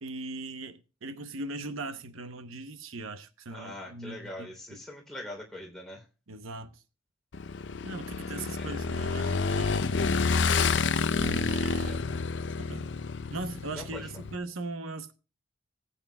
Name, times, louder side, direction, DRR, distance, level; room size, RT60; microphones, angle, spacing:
voice 1, 0.0-4.8 6.3-6.8 7.8-9.9 11.2-12.0 12.6-12.9 13.3-15.1, right 2 dB, 90° right, 0.9 m, -39 dB
voice 2, 3.5-6.0 8.2-8.7 11.8-12.0 13.7-14.0, left 1 dB, ahead, 3.1 m, -43 dB
Motorcycle / Engine, 7.3-14.4, left 4 dB, 60° left, 0.5 m, -29 dB
19.0 x 8.3 x 2.2 m
head